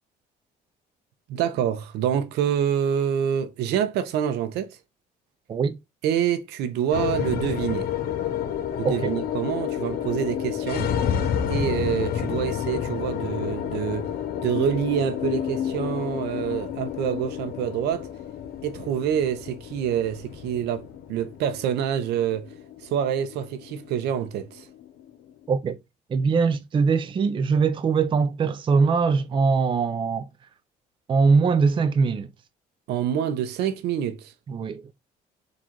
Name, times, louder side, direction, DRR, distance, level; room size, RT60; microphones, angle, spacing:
voice 1, 1.3-4.8 6.0-7.9 8.8-10.9 11.5-14.1 14.4-18.1 18.6-22.5 22.9-24.7 32.9-34.3, right 9 dB, 80° right, 0.7 m, -26 dB
sound 1, 6.9-25.3, left 9 dB, 65° left, 0.7 m, -30 dB
voice 2, 25.5-25.8 26.1-30.3 31.1-32.3 34.5-34.8, right 5 dB, 30° right, 0.4 m, -22 dB
3.8 x 2.4 x 4.5 m
cardioid pair, 110°, 17 cm